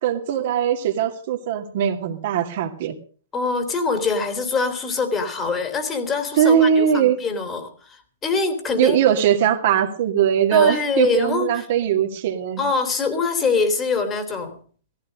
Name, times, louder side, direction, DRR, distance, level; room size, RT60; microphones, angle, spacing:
voice 1, 0.0-2.9 6.4-7.2 8.8-12.6, right 9 dB, 55° right, 4 dB, 2.3 m, -20 dB
voice 2, 3.3-9.0 10.5-11.6 12.6-14.6, left 4 dB, 20° left, 7 dB, 3.1 m, -24 dB
16.5 x 15.0 x 5.3 m, 0.43 s
hypercardioid pair, 120°, 0 cm